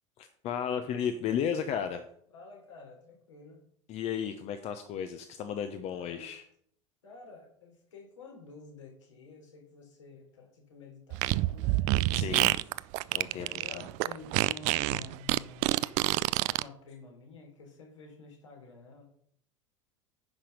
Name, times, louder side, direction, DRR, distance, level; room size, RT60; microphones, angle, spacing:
voice 1, 0.2-2.0 3.9-6.4 12.1-12.7 13.1-13.9 15.6-15.9, left 8 dB, 40° left, 9 dB, 1.0 m, -34 dB
voice 2, 2.3-3.7 5.9-6.3 7.0-12.0 13.2-15.7 16.5-19.1, left 4 dB, 75° left, 1 dB, 3.5 m, -50 dB
Fart, 11.1-16.6, right 19 dB, 45° right, 0.4 m, -27 dB
10.0 x 5.9 x 5.6 m, 0.66 s
figure-of-eight pair, 75°, 16 cm